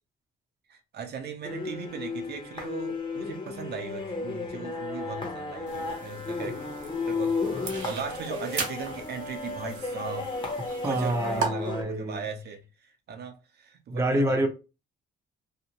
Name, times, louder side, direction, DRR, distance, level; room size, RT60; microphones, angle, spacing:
voice 1, 0.7-6.6 7.1-10.3 10.8-14.4, right 6 dB, 55° right, 0.6 m, -38 dB
sound 1, 1.4-11.8, left 4 dB, 25° left, 0.9 m, -34 dB
sound 2, 5.7-11.5, right 5 dB, 70° right, 1.0 m, -38 dB
voice 2, 10.8-12.2 13.9-14.5, right 1 dB, 15° right, 0.5 m, -27 dB
2.7 x 2.0 x 2.8 m
cardioid pair, 90°, 20 cm